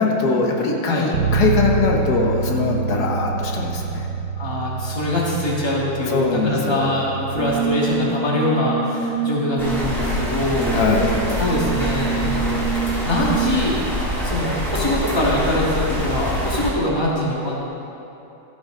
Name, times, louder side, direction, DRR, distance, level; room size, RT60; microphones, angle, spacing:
voice 1, 0.0-4.1 6.0-6.9 10.7-11.1, left 3 dB, 90° left, 0 dB, 1.7 m, -21 dB
Bass guitar, 1.1-7.4, right 5 dB, 75° right, 1.4 m, -26 dB
voice 2, 4.4-10.8 11.4-13.8 14.2-17.7, left 1 dB, 15° left, -5 dB, 1.7 m, -23 dB
Brass instrument, 7.3-13.7, right 6 dB, 50° right, 2.1 m, -26 dB
sound 1, 9.6-16.7, equal, ahead, 2.2 m, -25 dB
13.0 x 9.4 x 3.8 m, 2.9 s
omnidirectional pair, 1.7 m